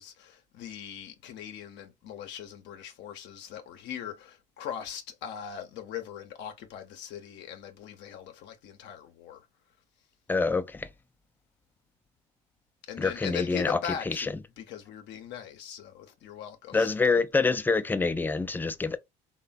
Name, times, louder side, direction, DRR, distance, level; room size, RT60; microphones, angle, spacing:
voice 1, 0.0-9.5 12.9-17.5, left 9 dB, 65° left, 0.6 m, -40 dB
voice 2, 10.3-10.9 13.0-13.8 14.1-14.3 16.7-19.0, left 4 dB, 10° left, 0.3 m, -26 dB
3.1 x 2.1 x 2.2 m
supercardioid pair, 75°, 19 cm